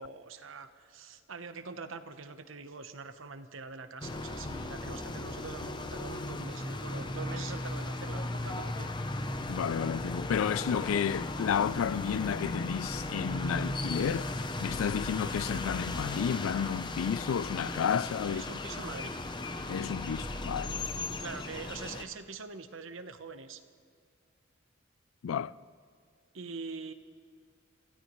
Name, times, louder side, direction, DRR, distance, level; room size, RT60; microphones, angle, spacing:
voice 1, 0.0-8.9 18.3-19.2 21.2-23.6 26.3-26.9, right 4 dB, 75° right, 1.0 m, -44 dB
sound 1, 4.0-22.0, left 2 dB, 20° left, 0.6 m, -36 dB
voice 2, 9.5-14.3 14.6-18.4 19.7-20.8 25.2-25.5, left 7 dB, 85° left, 0.4 m, -31 dB
27.0 x 16.0 x 3.1 m
head